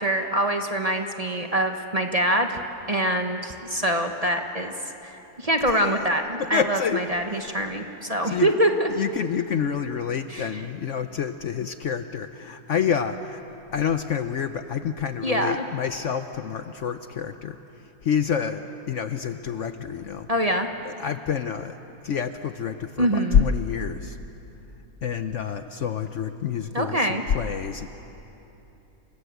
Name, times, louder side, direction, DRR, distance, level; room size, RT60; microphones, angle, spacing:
voice 1, 0.0-2.6 2.9-4.7 5.0-8.9 10.3-10.6 15.2-15.6 20.3-20.7 23.0-23.4 26.7-27.2, right 1 dB, 25° right, 4 dB, 1.0 m, -24 dB
voice 2, 5.7-6.0 6.4-7.0 7.3-7.6 8.2-8.5 8.9-13.4 13.7-17.6 17.8-20.3 20.8-21.8 22.0-24.2 25.0-27.9, left 7 dB, 60° left, 9 dB, 0.9 m, -28 dB
28.5 x 19.5 x 8.1 m, 3.0 s
omnidirectional pair, 1.7 m